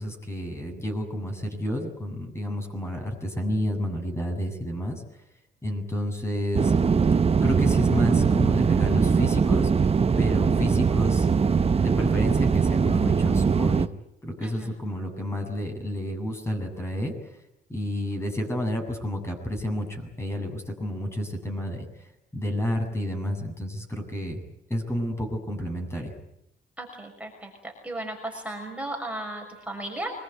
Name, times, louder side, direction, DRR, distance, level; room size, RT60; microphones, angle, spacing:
voice 1, 0.0-5.0 5.6-6.7 7.4-9.7 10.2-11.3 11.8-13.9 14.2-17.1 17.7-24.4 24.7-26.1, equal, 15° left, 3 dB, 7.5 m, -30 dB
sound 1, 6.5-13.9, right 5 dB, 30° right, 1.0 m, -21 dB
voice 2, 26.8-30.1, right 1 dB, 5° right, 1 dB, 6.2 m, -35 dB
26.0 x 21.0 x 9.5 m, 0.82 s
cardioid pair, 90°, 20 cm